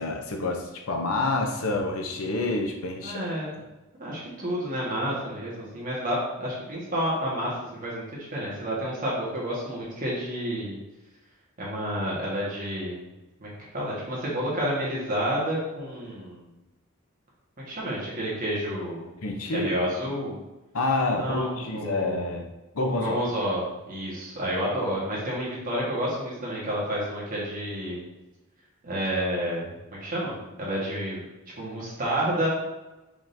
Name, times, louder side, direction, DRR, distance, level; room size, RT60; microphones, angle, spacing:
voice 1, 0.0-3.2 19.2-19.7 20.7-22.5 22.7-23.2, left 2 dB, 75° left, 3 dB, 0.7 m, -28 dB
voice 2, 3.0-3.5 4.0-10.8 11.6-13.1 13.4-16.5 17.6-19.1 19.5-20.4 21.1-22.3 23.0-28.0 28.8-29.7 30.0-31.2 31.6-32.5, equal, 40° right, -6 dB, 1.5 m, -30 dB
4.9 x 3.7 x 2.7 m, 1.0 s
head